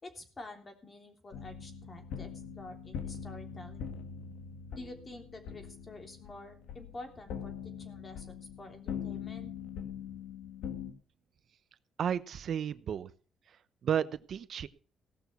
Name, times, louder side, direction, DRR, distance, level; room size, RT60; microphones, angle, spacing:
voice 1, 0.0-2.3 2.5-3.9 4.7-9.5, left 2 dB, 30° left, 5 dB, 3.3 m, -49 dB
sound 1, 1.3-10.9, left 7 dB, 85° left, 1.6 m, -42 dB
voice 2, 12.0-13.1 13.5-13.6 13.8-14.7, right 8 dB, 60° right, 16 dB, 0.8 m, -33 dB
17.0 x 6.2 x 6.9 m, 0.41 s
cardioid pair, 90°, 0 cm